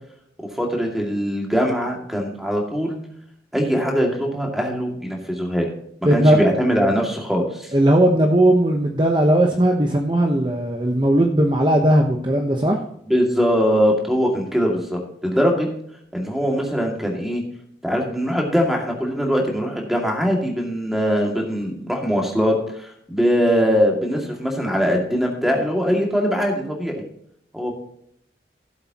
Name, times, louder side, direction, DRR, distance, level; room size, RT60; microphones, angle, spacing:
voice 1, 0.5-3.0 3.5-5.7 6.1-7.7 13.1-15.7 16.1-17.4 17.8-27.0 27.5-27.7, equal, ahead, 0 dB, 2.3 m, -21 dB
voice 2, 6.0-6.4 7.7-12.8, right 1 dB, 25° right, 1 dB, 1.0 m, -17 dB
16.0 x 7.8 x 3.0 m, 0.70 s
head